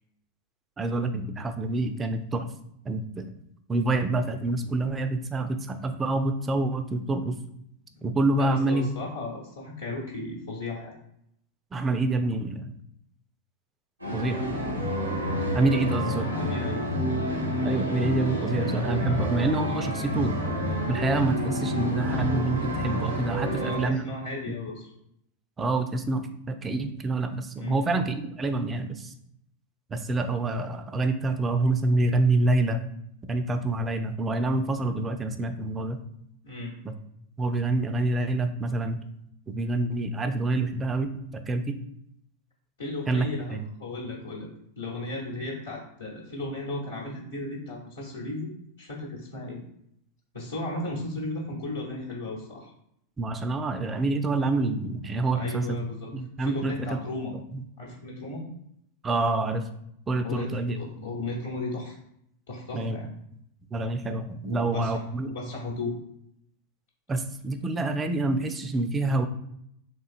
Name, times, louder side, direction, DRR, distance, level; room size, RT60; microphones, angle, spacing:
voice 1, 0.8-2.5 2.9-3.3 3.7-7.4 8.0-8.9 11.7-12.7 14.1-14.5 15.5-16.3 17.6-20.4 20.9-24.0 24.5-24.6 25.6-29.1 29.9-32.8 33.3-36.0 36.8-36.9 37.4-39.0 39.5-41.8 43.1-43.7 53.2-55.8 56.1-56.9 57.5-57.6 59.0-59.7 60.1-60.8 62.7-63.0 63.7-65.3 67.1-69.3, right 2 dB, 20° right, 8 dB, 0.3 m, -27 dB
voice 2, 8.4-11.0 16.3-16.9 23.4-24.9 27.5-27.8 36.4-36.8 42.8-44.5 44.8-48.5 48.8-49.6 50.3-52.7 55.3-56.1 56.4-57.4 57.8-58.5 60.2-60.5 60.7-62.0 62.5-63.1 64.4-65.0 65.3-65.9, left 2 dB, 70° left, -4 dB, 0.8 m, -35 dB
sound 1, 14.0-23.9, equal, 85° right, 0.7 m, -29 dB
3.7 x 2.5 x 2.4 m, 0.74 s
figure-of-eight pair, 90°, 0 cm